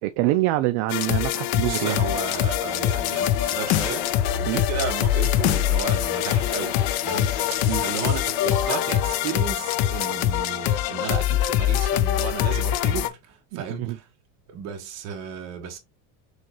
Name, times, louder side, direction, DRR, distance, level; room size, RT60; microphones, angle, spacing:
voice 1, 0.0-2.0 4.5-4.6 7.7-7.8 13.5-14.0, right 17 dB, 65° right, 0.5 m, -25 dB
sound 1, 0.9-13.1, left 12 dB, 70° left, 0.6 m, -24 dB
voice 2, 1.6-14.1 14.5-15.8, right 7 dB, 45° right, 1.2 m, -34 dB
sound 2, 1.8-10.4, left 7 dB, 85° left, 1.2 m, -34 dB
6.4 x 2.4 x 3.0 m
cardioid pair, 170°, 38 cm